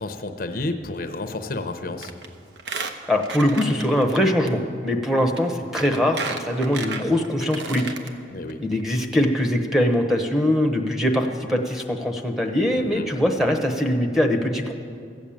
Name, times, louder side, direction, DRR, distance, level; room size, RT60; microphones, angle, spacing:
voice 1, 0.0-2.1 8.3-8.6 12.8-13.1, left 2 dB, 55° left, 7 dB, 0.7 m, -31 dB
Squeak, 2.0-2.3 2.6-4.2 4.5-4.6 5.3-5.4 5.8-8.1 8.5-8.6 8.8-8.9, right 4 dB, 80° right, 0.9 m, -33 dB
voice 2, 3.1-7.8 8.6-14.7, left 1 dB, ahead, 2 dB, 0.9 m, -22 dB
14.5 x 7.2 x 8.7 m, 2.3 s
head